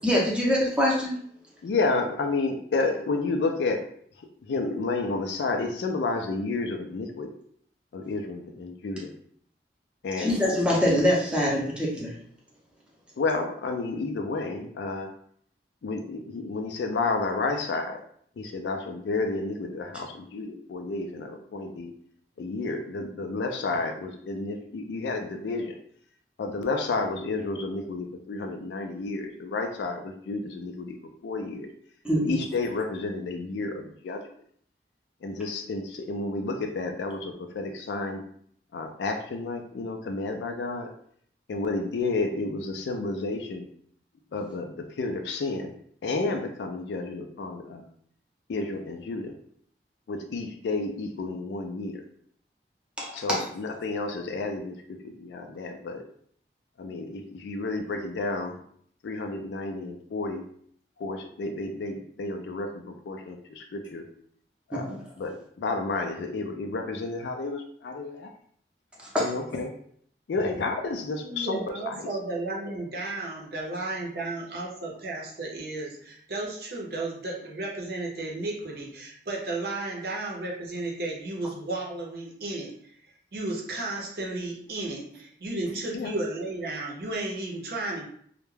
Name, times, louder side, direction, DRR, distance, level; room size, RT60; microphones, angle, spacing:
voice 1, 0.0-1.2 10.2-12.1 32.0-32.4 53.0-53.4 64.7-64.8 69.1-69.3, equal, 5° right, -4 dB, 0.6 m, -24 dB
voice 2, 1.6-3.8 4.2-7.3 7.9-9.1 10.0-10.4 13.2-15.1 15.8-18.0 18.4-21.9 22.4-25.7 26.4-31.0 31.2-31.7 32.2-34.2 35.2-38.2 38.7-40.9 41.5-43.7 44.3-45.7 46.0-47.9 48.5-49.3 50.1-52.0 53.1-56.0 56.8-58.6 59.0-60.4 61.0-64.1 64.7-68.3 69.2-69.7 70.3-71.6 71.9-72.1 85.9-86.1, left 3 dB, 80° left, 4 dB, 0.4 m, -31 dB
voice 3, 71.2-82.9 83.3-88.1, right 2 dB, 60° right, -1 dB, 0.6 m, -33 dB
2.3 x 2.1 x 3.1 m, 0.62 s
head